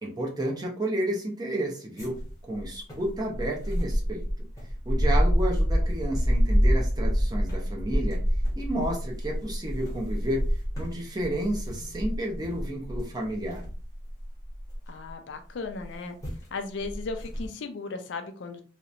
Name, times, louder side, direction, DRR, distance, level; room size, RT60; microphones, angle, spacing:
voice 1, 0.0-2.1 2.4-4.5 4.9-8.2 8.6-10.4 10.8-13.7, right 1 dB, 20° right, -1 dB, 0.5 m, -31 dB
sound 1, 2.0-15.1 15.8-15.9 16.2-16.5 16.8-17.5, equal, 15° left, 0.8 m, -27 dB
voice 2, 14.9-16.2 16.5-18.6, left 4 dB, 60° left, 6 dB, 0.4 m, -36 dB
2.8 x 2.1 x 2.4 m, 0.39 s
head